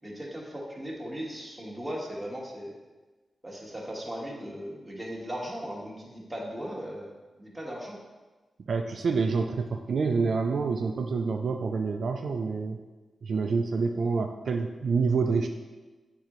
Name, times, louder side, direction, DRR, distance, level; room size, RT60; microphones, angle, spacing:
voice 1, 0.0-2.8 3.4-7.1 7.4-8.0, equal, 10° right, -4 dB, 1.4 m, -37 dB
voice 2, 8.7-12.8 13.2-15.5, right 4 dB, 70° right, 4 dB, 0.4 m, -27 dB
8.6 x 3.7 x 3.0 m, 1.2 s
wide cardioid pair, 100°, 0 cm